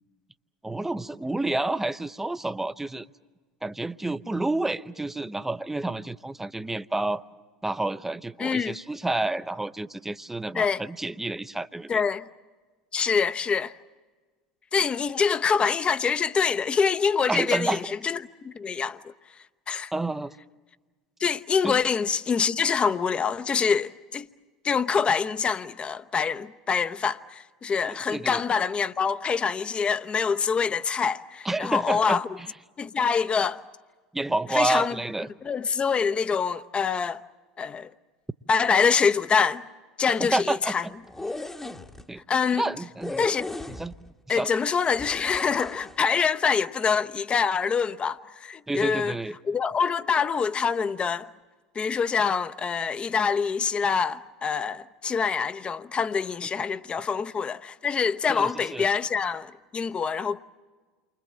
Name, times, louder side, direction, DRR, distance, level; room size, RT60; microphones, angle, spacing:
voice 1, 0.6-3.1 3.6-7.2 7.6-12.0 17.3-17.8 19.9-20.3 21.6-21.8 27.9-28.4 31.4-32.2 34.1-35.3 40.1-40.9 42.1-42.2 42.6-43.3 43.7-43.9 44.3-44.5 48.7-49.4 58.3-58.9, right 2 dB, 5° right, 0.8 m, -29 dB
voice 2, 8.4-8.7 10.5-10.8 11.9-12.3 12.9-13.8 14.7-19.0 19.7-19.9 21.2-24.3 24.6-32.3 32.8-33.6 34.5-35.0 35.4-37.2 37.6-37.9 38.5-39.7 40.0-40.9 42.3-42.6 43.2-43.6 44.3-49.1 49.5-51.3 51.7-60.4, left 6 dB, 25° left, 0.9 m, -25 dB
sound 1, 41.0-42.0 43.0-44.1 45.0-46.0, left 2 dB, 10° left, 1.3 m, -36 dB
29.5 x 24.5 x 7.6 m
figure-of-eight pair, 75°, 4 cm